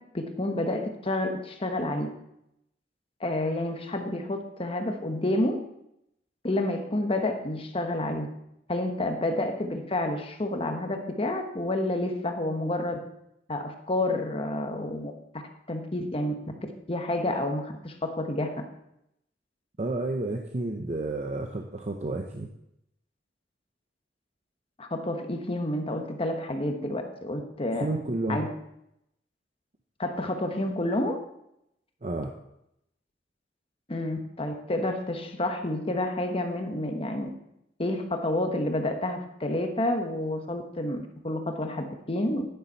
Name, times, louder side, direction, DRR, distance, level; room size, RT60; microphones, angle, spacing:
voice 1, 0.1-2.1 3.2-5.6 6.4-8.3 8.7-13.0 13.5-15.1 15.7-16.6 16.9-18.5 24.8-27.9 28.3-28.5 30.0-31.2 33.9-37.3 37.8-42.5, left 1 dB, 30° left, 5 dB, 1.2 m, -29 dB
voice 2, 19.8-22.5 27.8-28.4 32.0-32.3, right 2 dB, 40° right, 3 dB, 0.7 m, -31 dB
10.5 x 10.0 x 4.1 m, 0.81 s
head